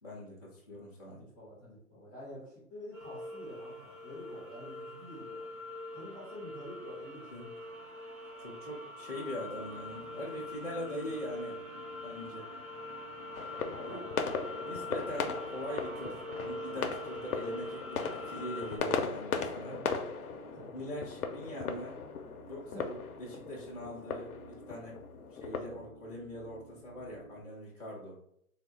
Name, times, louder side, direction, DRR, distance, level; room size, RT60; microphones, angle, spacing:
voice 1, 0.0-1.2 7.3-7.5 8.4-11.6 12.0-12.5 13.9-14.0 14.6-19.8 20.7-22.0 22.5-25.0 25.3-28.2, equal, 25° left, -8 dB, 0.5 m, -42 dB
voice 2, 1.0-5.6 5.9-7.8 13.6-14.2 19.6-20.1 20.5-20.9 22.6-22.9, equal, 10° left, -13 dB, 0.9 m, -48 dB
sound 1, 2.9-18.8, left 1 dB, 25° right, 0.9 m, -43 dB
sound 2, 9.4-27.4, right 2 dB, 55° right, 0.9 m, -56 dB
sound 3, 13.3-25.6, left 5 dB, 80° left, 0.6 m, -38 dB
3.5 x 2.1 x 3.2 m, 0.71 s
hypercardioid pair, 170°, 44 cm